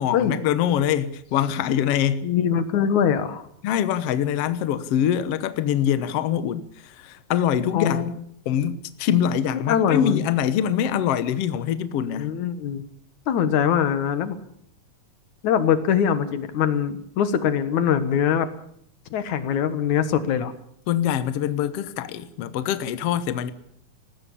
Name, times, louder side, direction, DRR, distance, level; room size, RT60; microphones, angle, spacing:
voice 1, 0.0-2.3 3.6-8.1 8.5-12.3 20.9-23.5, left 9 dB, 65° left, 1.9 m, -24 dB
voice 2, 2.2-3.5 7.7-8.1 9.5-10.2 12.2-12.8 13.3-14.4 15.4-18.5 19.1-20.5, left 8 dB, 85° left, 2.8 m, -22 dB
20.0 x 15.5 x 8.5 m
omnidirectional pair, 3.3 m